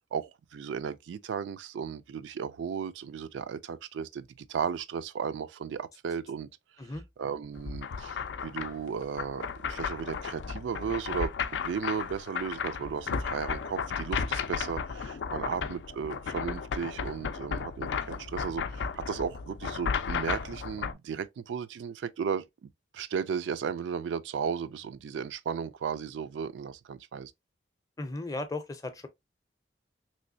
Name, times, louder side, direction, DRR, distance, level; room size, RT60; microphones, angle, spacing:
voice 1, 0.1-6.5 7.2-27.3, right 6 dB, 85° right, 0.3 m, -35 dB
sound 1, 7.6-20.9, left 6 dB, 80° left, 0.4 m, -34 dB
voice 2, 28.0-29.1, left 2 dB, 20° left, 0.5 m, -36 dB
3.1 x 3.0 x 2.6 m
head